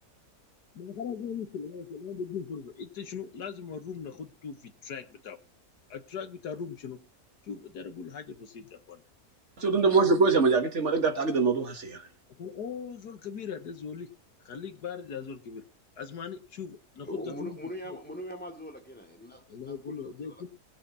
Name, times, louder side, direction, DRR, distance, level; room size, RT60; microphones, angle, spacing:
voice 1, 0.7-5.4 5.9-7.0 7.4-9.0 9.6-10.2 12.3-14.1 14.5-15.6 16.0-17.6 17.9-18.0 19.5-20.5, left 6 dB, 85° left, 2.0 m, -39 dB
voice 2, 9.6-12.1, right 4 dB, 45° right, 2.0 m, -24 dB
voice 3, 17.1-20.4, equal, 5° left, 2.6 m, -41 dB
20.5 x 7.8 x 4.2 m
omnidirectional pair, 1.7 m